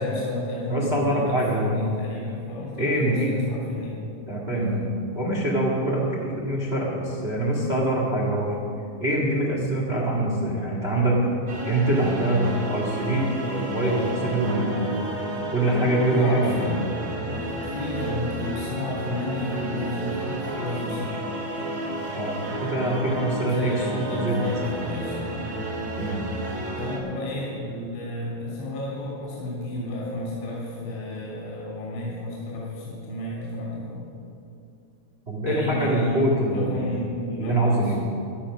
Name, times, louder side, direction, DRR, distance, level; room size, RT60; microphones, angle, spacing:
voice 1, 0.0-4.0 4.5-4.8 13.7-14.2 15.7-16.8 17.2-21.2 23.2-25.5 26.8-34.1 35.5-38.1, left 1 dB, 80° left, -5 dB, 5.3 m, -32 dB
voice 2, 0.7-1.7 2.8-3.3 4.3-4.8 5.1-8.6 9.0-11.3 11.6-12.4 12.7-14.9 15.5-16.6 22.1-24.4 26.0-26.2 35.3-36.7 37.4-38.0, right 1 dB, 75° right, -3 dB, 0.5 m, -24 dB
sound 1, 11.5-27.0, right 1 dB, 40° right, 2.8 m, -32 dB
16.0 x 10.5 x 6.3 m, 2.6 s
omnidirectional pair, 5.2 m